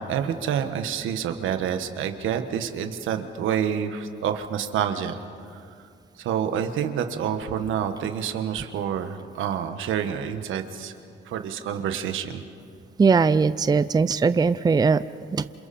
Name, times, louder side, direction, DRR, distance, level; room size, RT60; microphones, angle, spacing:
voice 1, 0.0-5.2 6.2-10.9 11.3-12.4, right 8 dB, 85° right, 8 dB, 1.4 m, -28 dB
voice 2, 13.0-15.0 15.3-15.4, right 5 dB, 20° right, 14 dB, 0.5 m, -20 dB
28.0 x 27.5 x 4.3 m, 2.3 s
cardioid pair, 90°, 20 cm